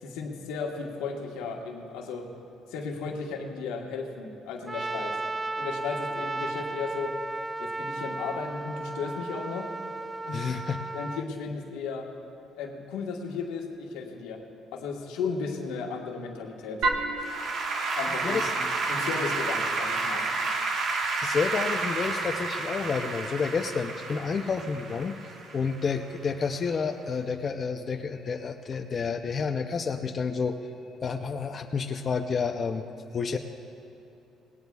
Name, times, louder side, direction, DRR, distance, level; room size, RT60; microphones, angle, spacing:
voice 1, 0.0-2.3 2.7-5.1 5.6-7.1 7.6-9.7 10.2-12.1 12.5-14.4 14.7-16.8 17.9-18.4 18.9-20.3, left 5 dB, 90° left, 1 dB, 1.4 m, -35 dB
Trumpet, 4.7-11.2, right 2 dB, 15° right, 0.4 m, -34 dB
voice 2, 10.3-10.8 18.2-18.5 21.2-25.2 25.5-30.6 30.8-32.9 33.1-33.4, left 5 dB, 40° left, 5 dB, 0.6 m, -30 dB
Applause / Keyboard (musical), 16.8-26.2, right 3 dB, 65° right, 1.4 m, -30 dB
18.5 x 17.5 x 2.4 m, 2.8 s
cardioid pair, 105°, 0 cm